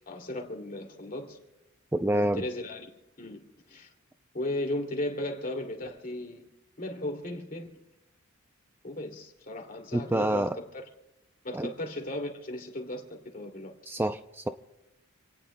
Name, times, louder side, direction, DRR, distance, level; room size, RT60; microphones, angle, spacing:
voice 1, 0.1-1.4 2.1-2.9 3.2-3.9 4.3-6.5 6.8-7.7 8.8-10.8 11.4-13.7, left 1 dB, 40° left, 3 dB, 2.6 m, -36 dB
voice 2, 1.9-2.4 9.9-10.6 11.5-11.7 13.9-14.5, right 1 dB, 10° right, 8 dB, 0.4 m, -27 dB
28.5 x 18.0 x 2.2 m, 0.89 s
head